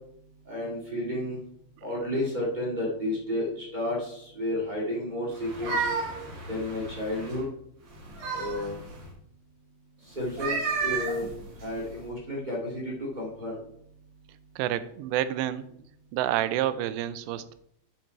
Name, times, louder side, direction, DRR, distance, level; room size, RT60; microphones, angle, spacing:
voice 1, 0.4-1.4 1.8-5.7 6.5-7.4 8.3-8.8 10.1-11.3 11.6-13.6, left 1 dB, 40° right, -4 dB, 0.6 m, -31 dB
sound 1, 5.3-7.4 7.9-9.1 10.2-12.0, right 4 dB, 70° right, 4.2 m, -33 dB
voice 2, 14.6-15.7 16.1-17.5, right 12 dB, 90° right, 14 dB, 2.8 m, -28 dB
9.3 x 5.2 x 4.5 m, 0.70 s
omnidirectional pair, 4.9 m